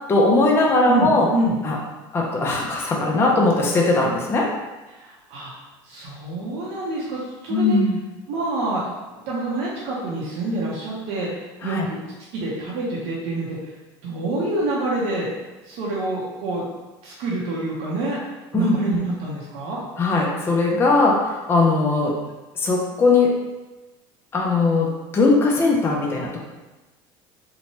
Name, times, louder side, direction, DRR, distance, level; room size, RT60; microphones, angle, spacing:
voice 1, 0.1-1.3 1.6-1.8 2.1-4.5 7.5-8.0 11.6-11.9 18.5-18.8 20.0-22.2 22.6-23.4 24.3-26.4, left 3 dB, 20° left, -2 dB, 0.4 m, -19 dB
voice 2, 0.9-1.6 4.9-5.5 5.8-7.8 8.3-12.0 12.3-13.7 14.0-15.3 15.6-16.6 17.0-18.2 18.5-19.8, right 2 dB, 70° right, -6 dB, 0.7 m, -27 dB
2.8 x 2.2 x 2.9 m, 1.1 s
supercardioid pair, 125°, 11 cm